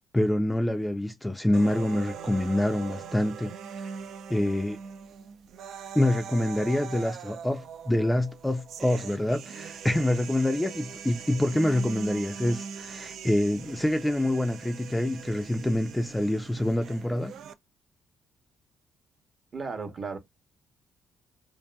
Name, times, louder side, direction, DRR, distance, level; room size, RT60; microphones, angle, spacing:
voice 1, 0.1-4.0 4.3-4.8 5.9-17.3, left 1 dB, 10° left, 0.4 m, -26 dB
sound 1, 1.5-17.5, right 7 dB, 75° right, 0.3 m, -41 dB
voice 2, 19.5-20.2, right 4 dB, 45° right, 0.8 m, -34 dB
2.6 x 2.5 x 2.2 m
cardioid pair, 90°, 0 cm